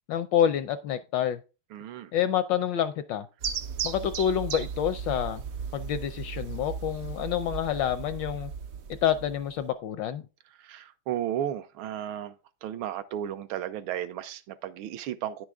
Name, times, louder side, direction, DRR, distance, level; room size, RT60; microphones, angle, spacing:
voice 1, 0.1-1.4 2.1-3.3 3.8-5.4 5.7-8.5 9.0-10.3, left 10 dB, 75° left, 1.1 m, -27 dB
voice 2, 1.7-2.1 10.6-12.3 12.6-15.5, right 11 dB, 80° right, 1.4 m, -34 dB
sound 1, 3.4-9.7, right 7 dB, 65° right, 0.8 m, -36 dB
9.8 x 6.3 x 3.4 m
omnidirectional pair, 2.4 m